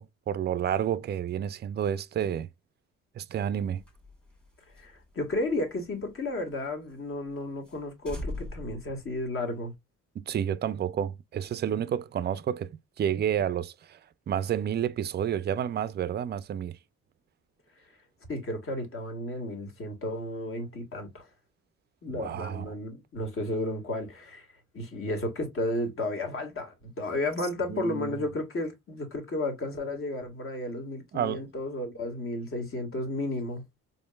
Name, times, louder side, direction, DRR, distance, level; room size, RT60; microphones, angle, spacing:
voice 1, 0.0-2.5 3.2-3.8 10.2-14.0 14.3-16.8 22.1-22.7 27.7-28.2 31.1-31.4, right 9 dB, 35° right, 0.4 m, -30 dB
sound 1, 3.7-6.5 6.9-7.0 7.3-7.4 7.6-9.7, left 1 dB, 5° left, 1.4 m, -42 dB
voice 2, 4.8-9.7 18.3-21.3 22.0-24.5 24.7-33.6, left 1 dB, 45° left, 1.6 m, -33 dB
4.4 x 3.0 x 2.2 m
cardioid pair, 90°, 30 cm